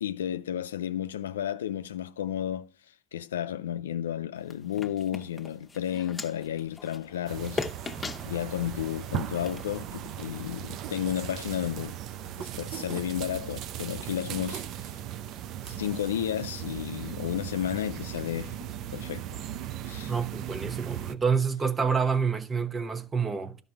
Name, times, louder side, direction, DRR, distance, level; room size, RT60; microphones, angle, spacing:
voice 1, 0.0-2.7 3.1-7.6 8.3-12.0 12.4-14.6 15.7-18.6 18.9-19.2 19.9-20.1, left 10 dB, 90° left, 0.4 m, -32 dB
sound 1, 4.4-10.4, left 3 dB, 20° left, 1.0 m, -40 dB
sound 2, 7.3-21.2, right 11 dB, 60° right, 0.6 m, -38 dB
voice 2, 20.1-23.6, right 5 dB, 30° right, 1.0 m, -28 dB
12.0 x 5.4 x 5.7 m
hypercardioid pair, 70°, 0 cm